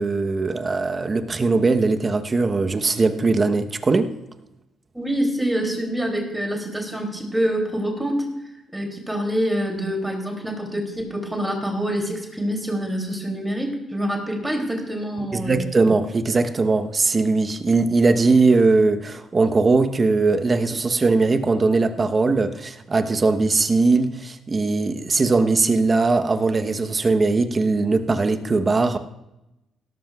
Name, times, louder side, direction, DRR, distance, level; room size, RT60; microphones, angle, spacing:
voice 1, 0.0-4.1 15.3-29.0, right 3 dB, 30° right, 8 dB, 1.0 m, -20 dB
voice 2, 4.9-8.3 8.7-15.6, equal, 5° right, 1 dB, 3.0 m, -26 dB
17.5 x 13.5 x 2.4 m, 0.93 s
cardioid pair, 90°, 0 cm